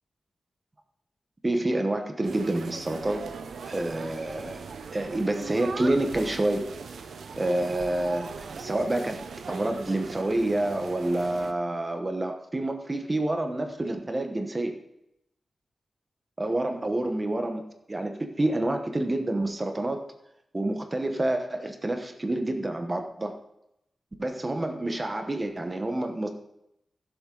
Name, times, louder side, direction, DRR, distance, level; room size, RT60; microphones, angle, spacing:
voice 1, 1.4-3.3 3.7-4.6 4.9-6.7 7.4-14.7 16.4-20.1 20.5-23.4 24.2-26.3, right 1 dB, 25° right, 5 dB, 1.0 m, -28 dB
sound 1, 2.2-11.5, right 5 dB, 90° right, 0.8 m, -39 dB
15.0 x 7.4 x 3.9 m, 0.81 s
wide cardioid pair, 120°, 0 cm